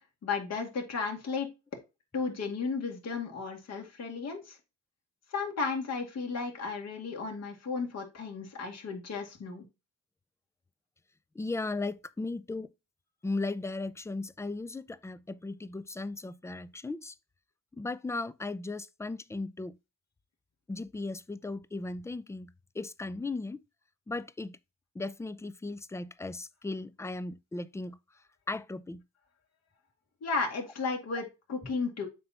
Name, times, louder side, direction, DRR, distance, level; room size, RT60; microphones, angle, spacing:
voice 1, 0.2-1.5 2.1-4.6 5.3-9.6 30.2-32.1, left 4 dB, 60° left, 2.2 m, -34 dB
voice 2, 11.3-12.7 13.2-17.2 17.7-19.8 20.7-23.6 24.1-24.6 24.9-28.0 28.5-29.0 31.6-31.7, left 3 dB, 10° left, 0.4 m, -37 dB
7.5 x 2.9 x 5.6 m
cardioid pair, 90°, 30 cm